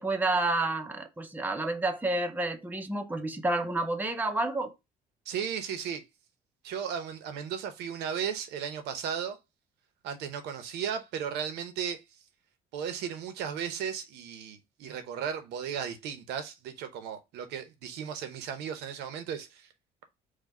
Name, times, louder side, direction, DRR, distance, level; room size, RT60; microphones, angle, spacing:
voice 1, 0.0-4.7, right 2 dB, 10° right, 0.7 m, -29 dB
voice 2, 5.3-6.0 6.6-9.4 10.0-12.0 12.7-19.7, right 8 dB, 90° right, 0.8 m, -35 dB
4.9 x 2.3 x 4.3 m
cardioid pair, 110°, 17 cm